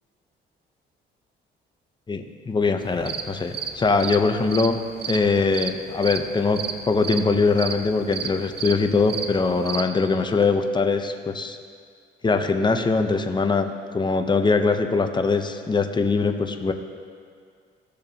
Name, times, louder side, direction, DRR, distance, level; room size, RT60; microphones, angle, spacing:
voice 1, 2.1-4.8 5.1-11.6 12.2-16.7, left 4 dB, 20° left, 6 dB, 0.7 m, -22 dB
sound 1, 2.8-9.8, right 7 dB, 55° right, 0.6 m, -33 dB
15.5 x 6.5 x 2.8 m, 2.1 s
cardioid pair, 90°, 20 cm